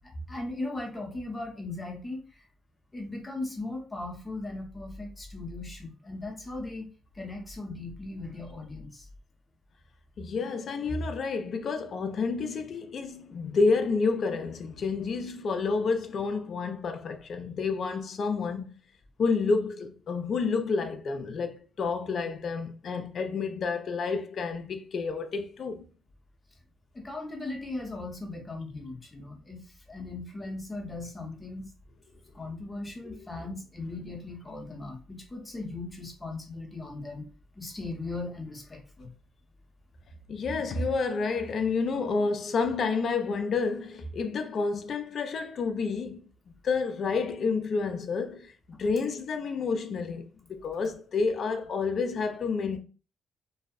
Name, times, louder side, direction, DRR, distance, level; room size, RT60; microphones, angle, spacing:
voice 1, 0.3-2.4 2.9-6.9 7.1-9.1 26.9-31.7 32.3-37.3 37.6-39.1, left 2 dB, 20° left, 0.7 m, -38 dB
voice 2, 10.2-18.7 19.2-25.8 33.1-33.2 40.3-46.2 46.6-48.5 48.8-50.2 50.5-52.8, left 4 dB, 55° left, 0.3 m, -29 dB
2.6 x 2.0 x 2.3 m
cardioid pair, 90°, 0 cm